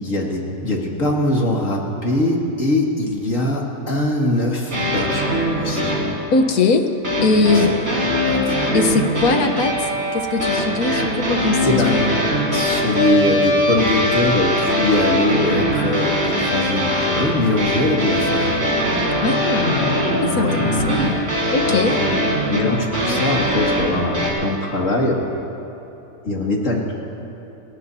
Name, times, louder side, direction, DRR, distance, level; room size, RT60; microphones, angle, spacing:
voice 1, 0.0-5.9 7.3-7.7 8.3-8.8 11.6-11.9 12.5-18.6 20.3-20.6 21.7-22.2 22.5-25.2 26.2-26.9, left 1 dB, 65° left, -2 dB, 2.6 m, -22 dB
sound 1, 4.7-6.2 7.0-24.3, equal, 50° right, 4.7 m, -21 dB
voice 2, 6.3-6.9 7.2-7.7 8.7-9.7 10.1-12.2 19.2-21.2 21.5-21.9, left 3 dB, 90° left, 6 dB, 1.5 m, -20 dB
29.5 x 17.5 x 2.8 m, 3.0 s
omnidirectional pair, 1.5 m